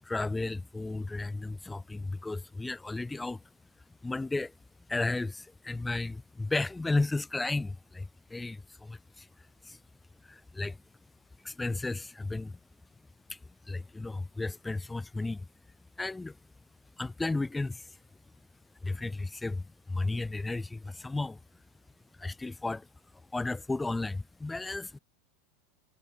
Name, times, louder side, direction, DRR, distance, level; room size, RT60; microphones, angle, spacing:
voice 1, 0.0-3.4 4.0-4.5 4.9-9.3 9.6-9.8 10.2-10.8 11.4-12.6 13.3-13.4 13.6-15.5 16.0-16.4 17.0-18.0 18.8-21.4 22.2-22.9 23.3-25.0, left 2 dB, 10° left, 3.4 m, -34 dB
hypercardioid pair, 100°, 0 cm